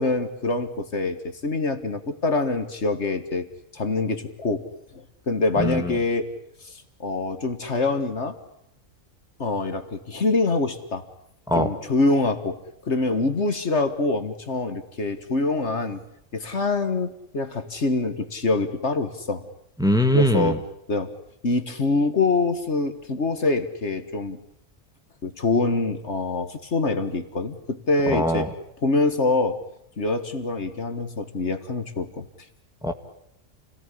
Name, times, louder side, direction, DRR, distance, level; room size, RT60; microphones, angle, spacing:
voice 1, 0.0-3.5 3.7-6.3 6.6-8.4 9.4-11.1 11.5-12.6 12.9-16.0 16.3-19.5 20.1-21.2 21.4-24.4 25.2-28.5 28.8-29.6 30.0-32.3, left 3 dB, 60° left, 9 dB, 2.0 m, -25 dB
voice 2, 19.8-20.5 28.1-28.4 32.8-32.9, equal, 5° right, 6 dB, 1.9 m, -21 dB
29.5 x 18.5 x 9.9 m, 0.74 s
omnidirectional pair, 1.3 m